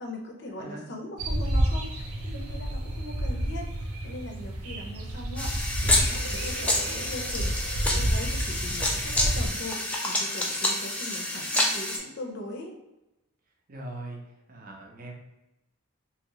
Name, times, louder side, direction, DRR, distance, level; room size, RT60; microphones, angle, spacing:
voice 1, 0.0-1.9 2.2-3.7 4.0-12.8, left 1 dB, 50° left, 2 dB, 0.6 m, -40 dB
sound 1, 1.2-9.5, right 1 dB, 90° right, 0.6 m, -30 dB
sound 2, 5.4-12.0, left 1 dB, 5° left, 0.3 m, -28 dB
voice 2, 13.7-14.2 14.5-15.2, right 2 dB, 40° right, 0 dB, 0.6 m, -40 dB
2.8 x 2.7 x 2.9 m, 0.94 s
head